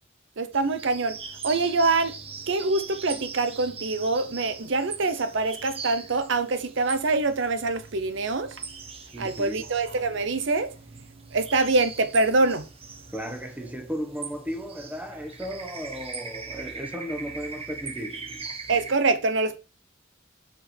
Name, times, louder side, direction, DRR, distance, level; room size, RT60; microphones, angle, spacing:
voice 1, 0.4-1.2 1.4-2.1 2.5-8.6 9.2-10.7 11.3-12.7 18.7-19.6, right 3 dB, 65° right, 0.7 m, -25 dB
sound 1, 0.5-19.0, right 5 dB, 30° right, 1.1 m, -41 dB
voice 2, 9.1-9.6 13.1-18.5, equal, 10° right, 1.2 m, -35 dB
7.5 x 5.2 x 4.4 m
head